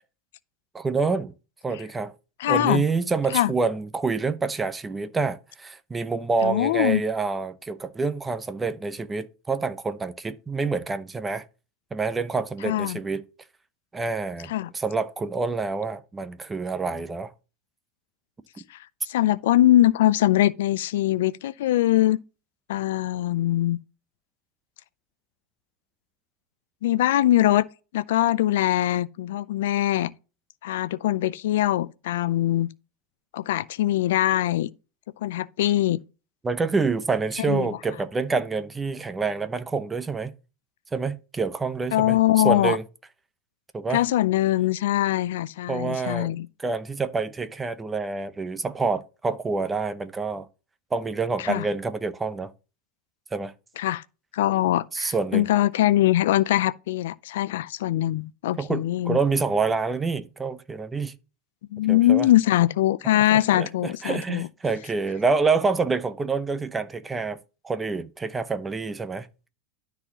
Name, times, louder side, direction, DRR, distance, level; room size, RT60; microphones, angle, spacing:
voice 1, 0.7-1.3 1.6-2.1 2.5-11.4 11.9-13.2 13.9-17.3 36.4-40.3 40.9-42.2 42.4-42.8 43.7-44.0 45.7-46.3 46.6-50.5 50.9-52.5 53.3-53.5 54.9-55.5 58.6-61.1 61.9-62.3 63.1-67.4 67.6-69.3, right 4 dB, 10° right, 0.6 m, -27 dB
voice 2, 2.4-2.8 3.3-3.5 6.4-7.0 12.6-13.0 14.5-14.7 18.7-18.8 19.1-22.2 22.7-23.8 26.8-27.7 27.9-30.1 30.6-32.7 33.3-34.7 35.2-36.0 37.5-37.7 41.9-42.8 43.9-46.5 51.4-51.6 53.8-54.0 54.3-59.2 61.7-64.5, left 14 dB, 80° left, 0.4 m, -22 dB
12.5 x 4.2 x 2.9 m
supercardioid pair, 145°, 0 cm